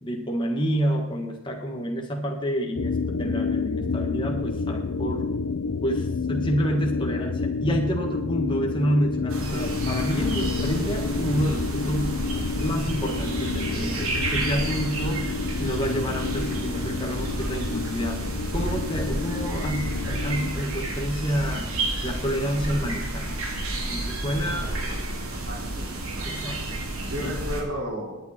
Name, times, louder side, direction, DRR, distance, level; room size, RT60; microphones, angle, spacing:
voice 1, 0.0-5.2 5.8-12.2 12.6-15.3 15.6-18.2 18.5-21.7 22.0-23.3 23.9-25.0 26.2-26.8 27.2-27.3, equal, 20° left, 1 dB, 1.6 m, -28 dB
sound 1, 2.8-20.5, left 4 dB, 85° left, 0.6 m, -29 dB
sound 2, 9.3-27.6, right 2 dB, 85° right, 3.0 m, -31 dB
voice 2, 25.0-26.3 27.1-28.2, equal, 70° right, -2 dB, 4.8 m, -34 dB
19.5 x 9.0 x 4.4 m, 0.96 s
head